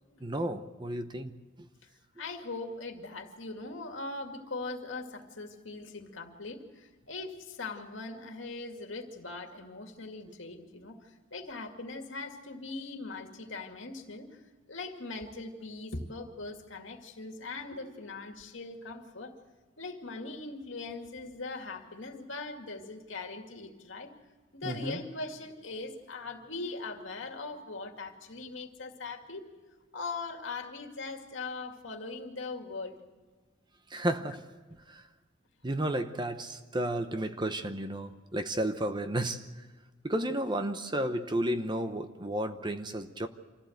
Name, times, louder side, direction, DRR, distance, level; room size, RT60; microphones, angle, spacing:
voice 1, 0.2-1.7 24.6-25.0 33.9-34.4 34.9-35.0 35.6-39.4 40.0-43.3, right 1 dB, 25° right, 9 dB, 0.9 m, -32 dB
voice 2, 2.2-19.3 19.8-24.1 24.5-29.5 29.9-33.0, left 3 dB, 70° left, 4 dB, 2.3 m, -40 dB
25.5 x 15.5 x 8.0 m, 1.4 s
head